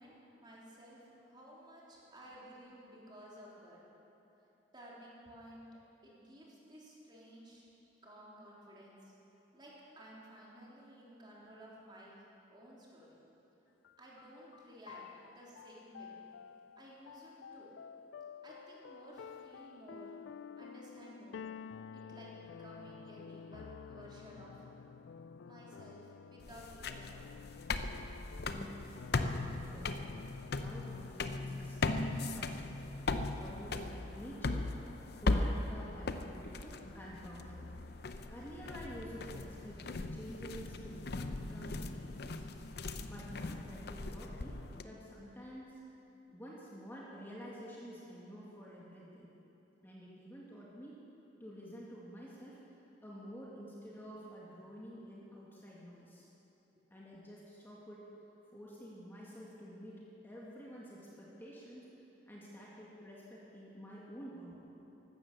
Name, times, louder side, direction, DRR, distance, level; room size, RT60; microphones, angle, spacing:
voice 1, 0.0-3.8 4.7-5.7 6.0-7.7 8.0-9.1 9.5-13.2 14.0-16.2 16.8-17.7 18.4-20.1 20.5-21.5 21.9-24.6 25.4-27.3, equal, 25° right, -6 dB, 3.5 m, -54 dB
sound 1, 13.8-31.1, left 6 dB, 85° left, 0.3 m, -51 dB
walking up and down metal steps, 26.4-44.8, left 2 dB, 60° left, 0.7 m, -38 dB
voice 2, 28.4-32.9 33.3-34.7 35.2-37.7 38.3-42.6 43.0-45.8 46.3-49.3 49.8-51.0 51.4-56.3 56.9-58.1 58.5-61.9 62.3-64.6, equal, 10° left, -6 dB, 1.8 m, -50 dB
15.5 x 12.5 x 6.8 m, 3.0 s
head